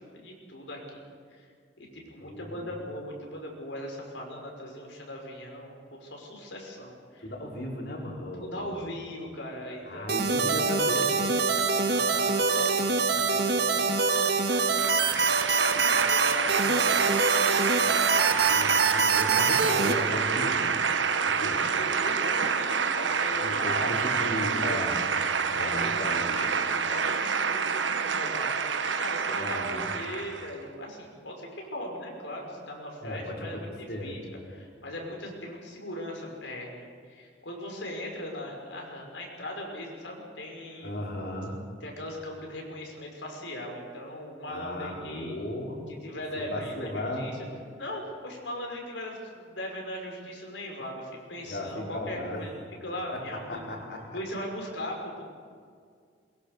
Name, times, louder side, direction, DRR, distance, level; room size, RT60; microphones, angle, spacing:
voice 1, 0.2-1.0 1.3-1.5 1.8-7.3 8.4-10.3 11.7-13.9 14.6-15.6 15.9-18.8 21.3-23.9 24.2-24.8 25.6-34.2 34.5-40.9 41.8-45.3 45.9-47.4 47.8-52.5 52.8-53.6 54.1-55.2, left 1 dB, 85° left, 0 dB, 5.8 m, -39 dB
voice 2, 2.2-2.7 7.2-8.9 9.8-11.3 18.3-20.8 21.2-21.6 23.4-25.0 25.5-26.3 29.4-29.9 33.0-33.6 33.9-34.1 40.8-41.5 44.5-45.8 46.3-47.3 51.4-52.4 53.5-54.0, left 1 dB, 60° left, -1 dB, 5.1 m, -36 dB
sound 1, 10.1-19.9, right 4 dB, 60° right, 1.9 m, -25 dB
sound 2, 14.5-30.5, right 6 dB, 85° right, 1.2 m, -27 dB
22.0 x 22.0 x 6.8 m, 2.1 s
head